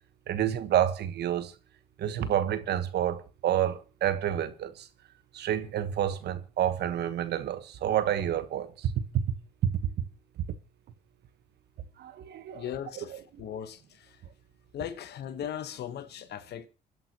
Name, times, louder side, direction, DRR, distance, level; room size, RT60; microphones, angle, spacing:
voice 1, 0.3-1.5 2.0-4.9 5.3-8.9 9.6-9.7 12.0-12.6 13.1-13.2, right 10 dB, 70° right, 1.3 m, -29 dB
voice 2, 12.5-14.2 14.7-16.7, left 10 dB, 70° left, 1.3 m, -38 dB
27.0 x 11.0 x 3.0 m
supercardioid pair, 60°, 18 cm